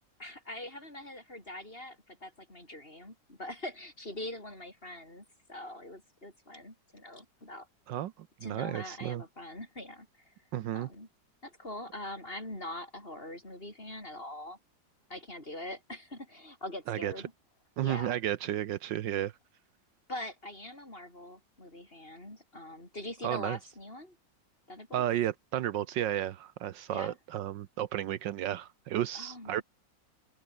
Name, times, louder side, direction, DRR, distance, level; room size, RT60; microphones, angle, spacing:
voice 1, 0.2-7.7 8.4-10.3 10.7-11.1 11.4-14.6 15.1-17.3 17.8-18.2 20.1-24.2 24.7-25.0 26.9-27.2 29.1-29.6, left 1 dB, 30° left, 7.0 m, -43 dB
voice 2, 7.9-9.2 10.5-10.9 16.9-17.1 17.8-19.3 23.2-23.6 24.9-29.6, right 12 dB, 75° right, 1.5 m, -33 dB
open air
omnidirectional pair, 2.0 m